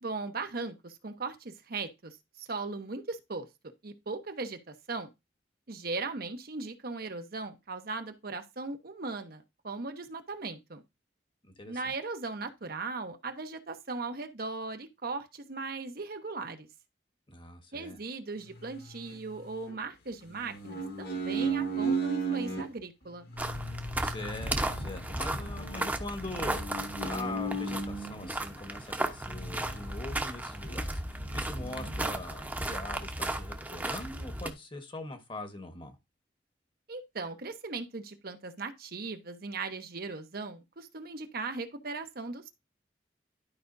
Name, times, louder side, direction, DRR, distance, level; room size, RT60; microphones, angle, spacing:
voice 1, 0.0-3.5 3.8-5.1 5.7-10.8 11.7-16.7 17.7-23.3 36.9-42.5, right 3 dB, 55° right, 0.9 m, -38 dB
voice 2, 11.6-11.9 17.3-18.0 24.0-36.0, left 2 dB, 30° left, 1.3 m, -42 dB
sound 1, 18.5-19.7 20.3-22.7 23.3-28.3 29.2-30.4 30.7-30.8 31.1-32.1, right 3 dB, 60° left, 1.7 m, -36 dB
sound 2, 23.4-34.5, right 1 dB, 10° right, 0.9 m, -35 dB
12.0 x 5.0 x 2.6 m
head